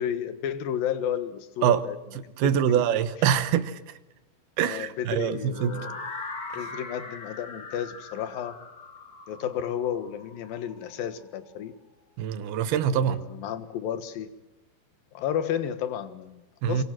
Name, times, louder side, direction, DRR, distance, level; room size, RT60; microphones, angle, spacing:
voice 1, 0.0-2.0 2.2-2.8 4.6-6.0 6.6-8.6 9.3-11.7 12.8-14.3 15.1-16.8, left 9 dB, 65° left, 3.0 m, -32 dB
voice 2, 2.2-3.8 4.6-5.8 12.2-13.2 16.6-16.8, right 9 dB, 70° right, 2.9 m, -24 dB
sound 1, 5.5-11.4, left 3 dB, 30° left, 1.8 m, -41 dB
25.0 x 23.5 x 7.6 m
omnidirectional pair, 4.8 m